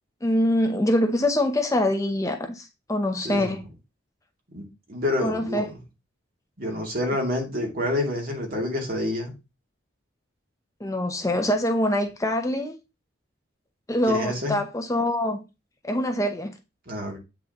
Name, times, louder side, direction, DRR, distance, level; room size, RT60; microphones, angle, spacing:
voice 1, 0.2-3.6 5.2-5.7 10.8-12.7 13.9-15.4 15.8-16.5, left 1 dB, 15° left, 0.8 m, -24 dB
voice 2, 4.9-5.6 6.6-9.3 14.1-14.6 16.9-17.2, left 1 dB, 50° right, 2.8 m, -28 dB
8.4 x 6.0 x 3.0 m
head